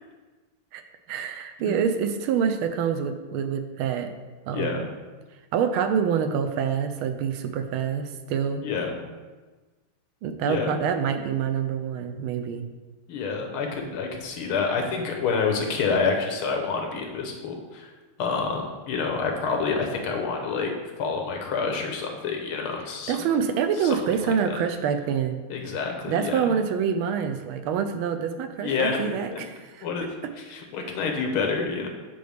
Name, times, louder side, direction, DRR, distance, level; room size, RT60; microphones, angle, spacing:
voice 1, 1.1-4.2 4.5-4.8 5.5-8.6 10.2-12.6 23.1-25.4 26.1-29.9, right 7 dB, 80° right, 8 dB, 1.4 m, -26 dB
voice 2, 4.5-4.9 8.6-9.0 10.5-10.8 13.1-17.9 18.2-20.7 21.0-23.2 23.8-24.0 24.2-24.6 25.5-26.5 28.6-29.4 29.8-30.2 30.5-31.9, left 5 dB, 80° left, 2 dB, 1.8 m, -28 dB
7.7 x 5.3 x 3.4 m, 1.3 s
omnidirectional pair, 2.4 m